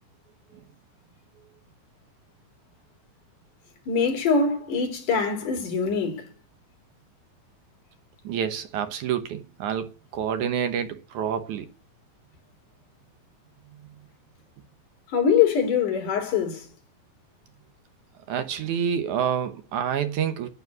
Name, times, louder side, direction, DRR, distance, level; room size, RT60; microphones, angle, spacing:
voice 1, 3.9-6.3 15.1-16.7, left 6 dB, 65° left, 4.5 m, -23 dB
voice 2, 8.2-11.7 18.3-20.5, right 8 dB, 70° right, 2.3 m, -28 dB
9.4 x 8.8 x 9.7 m
omnidirectional pair, 3.9 m